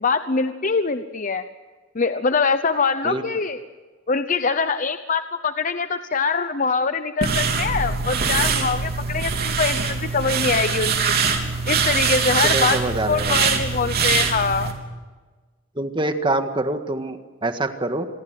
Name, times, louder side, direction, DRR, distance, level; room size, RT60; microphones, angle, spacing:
voice 1, 0.0-1.4 1.9-3.6 4.1-11.1 11.7-12.8 13.1-14.7, left 4 dB, 40° left, 10 dB, 0.8 m, -23 dB
sound 1, 7.2-14.7, right 5 dB, 50° right, 3.5 m, -23 dB
voice 2, 12.4-13.5 15.8-18.1, right 2 dB, 25° right, 7 dB, 1.8 m, -25 dB
27.0 x 22.0 x 7.7 m, 1.4 s
head